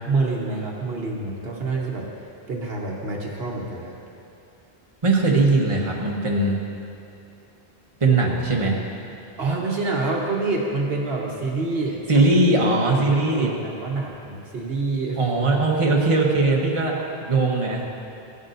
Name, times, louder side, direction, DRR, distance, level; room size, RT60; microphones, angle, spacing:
voice 1, 0.0-2.1 2.5-4.0 9.4-12.4 13.1-15.2, right 3 dB, 65° right, -2 dB, 1.3 m, -27 dB
voice 2, 5.0-6.6 8.0-8.8 12.1-13.5 15.2-17.8, right 2 dB, 30° right, -2 dB, 1.3 m, -20 dB
16.0 x 11.0 x 2.7 m, 2.6 s
omnidirectional pair, 1.1 m